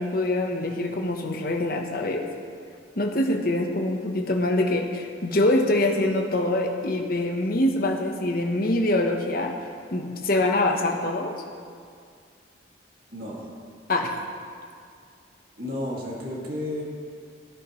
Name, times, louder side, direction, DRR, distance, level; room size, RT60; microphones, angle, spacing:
voice 1, 0.0-2.3 3.0-9.5 9.9-11.3 13.9-14.1, left 1 dB, 50° left, 2 dB, 1.1 m, -24 dB
voice 2, 13.1-13.5 15.6-16.8, left 1 dB, 50° right, -4 dB, 2.3 m, -32 dB
17.0 x 10.0 x 3.2 m, 2.2 s
head